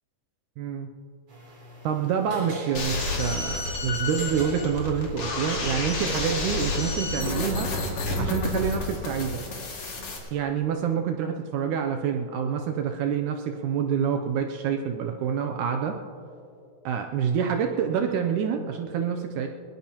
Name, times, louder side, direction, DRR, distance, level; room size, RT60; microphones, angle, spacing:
voice 1, 0.6-0.9 1.8-7.7 8.2-9.4 10.3-15.9 16.8-19.5, right 7 dB, 80° right, 5 dB, 1.8 m, -27 dB
sound 1, 1.3-7.2, equal, 40° right, 4.1 m, -41 dB
sound 2, 2.7-10.2, left 2 dB, 45° left, 2.8 m, -30 dB
21.0 x 19.5 x 2.9 m, 2.6 s
omnidirectional pair, 4.2 m